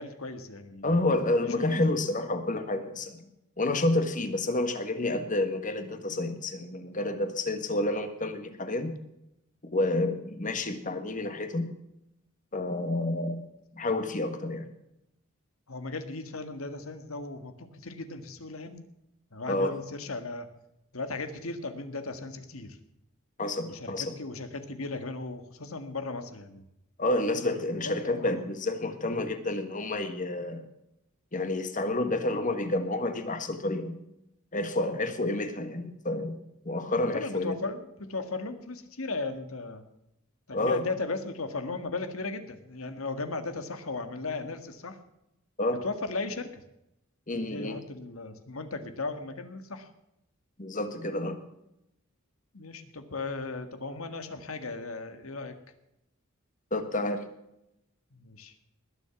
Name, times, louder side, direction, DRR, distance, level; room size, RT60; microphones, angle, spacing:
voice 1, 0.0-1.0 1.4-1.7 15.7-18.8 19.3-20.5 20.9-22.8 23.6-26.7 27.4-28.4 37.1-39.8 40.5-45.0 45.8-46.5 47.3-49.9 52.5-55.5 58.1-58.5, left 3 dB, 90° left, 9 dB, 1.7 m, -36 dB
voice 2, 0.8-3.3 3.6-9.0 9.7-11.7 12.5-13.5 13.8-14.6 19.5-19.7 23.4-24.1 27.0-30.7 31.3-34.0 34.5-36.3 36.6-37.6 40.5-40.8 45.6-45.8 47.3-47.8 50.6-51.4 56.7-57.2, left 2 dB, 40° left, 8 dB, 1.6 m, -29 dB
20.5 x 7.3 x 6.0 m, 0.84 s
head